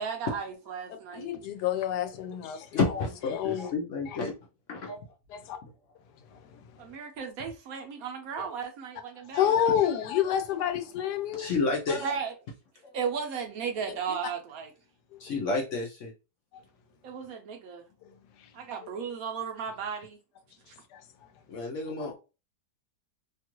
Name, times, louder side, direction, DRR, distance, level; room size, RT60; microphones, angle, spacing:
voice 1, 0.0-1.3 6.8-9.6 12.0-12.4 12.9-14.7 17.0-17.8 18.5-20.2 20.7-20.8, right 6 dB, 70° right, 1.0 m, -35 dB
voice 2, 1.1-2.8 3.3-3.7 4.1-4.2 5.3-5.6 6.3-6.4 8.4-8.5 9.3-11.5 13.8-13.9 15.1-15.2 18.0-18.1 18.4-18.5 20.9-21.0 22.0-22.1, left 10 dB, 80° left, 1.2 m, -29 dB
voice 3, 2.7-4.3 4.7-5.0 11.3-12.1 15.2-16.1 21.5-22.1, left 3 dB, 65° left, 0.8 m, -30 dB
2.9 x 2.3 x 2.9 m
omnidirectional pair, 1.8 m